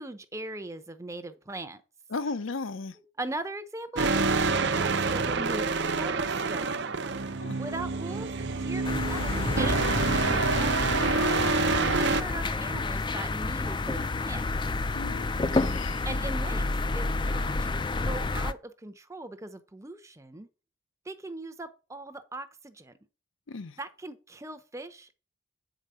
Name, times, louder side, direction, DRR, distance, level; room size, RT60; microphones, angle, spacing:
voice 1, 0.0-1.8 3.0-6.9 7.6-8.3 8.6-14.5 16.0-16.7 16.9-20.5 21.0-23.0 23.8-25.2, right 2 dB, 15° right, 0.7 m, -40 dB
voice 2, 2.1-2.9 7.4-7.6 11.8-12.1 14.9-16.2 23.5-23.7, left 3 dB, 70° left, 0.7 m, -36 dB
sound 1, 4.0-12.2, right 4 dB, 55° right, 0.6 m, -27 dB
sound 2, 8.8-18.5, left 3 dB, 20° left, 0.4 m, -29 dB
8.3 x 5.0 x 6.8 m
head